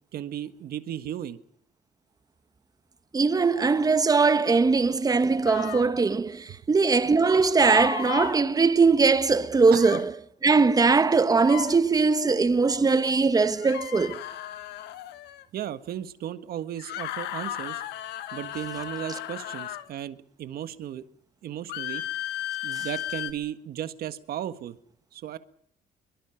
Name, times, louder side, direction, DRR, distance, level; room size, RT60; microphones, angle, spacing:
voice 1, 0.1-1.4 6.5-6.6 9.7-10.0 15.5-17.8 18.3-21.0 21.4-22.0 22.6-24.8 25.1-25.4, right 11 dB, 65° right, 1.7 m, -35 dB
voice 2, 3.1-10.1 10.4-14.2, right 4 dB, 20° right, 1.3 m, -21 dB
sound 1, 5.5-5.9 7.6-8.4 9.8-10.1 11.4-11.8 13.6-15.4 16.8-19.9 21.7-23.3, left 12 dB, 85° left, 1.7 m, -35 dB
24.0 x 22.5 x 5.9 m
cardioid pair, 110°, 17 cm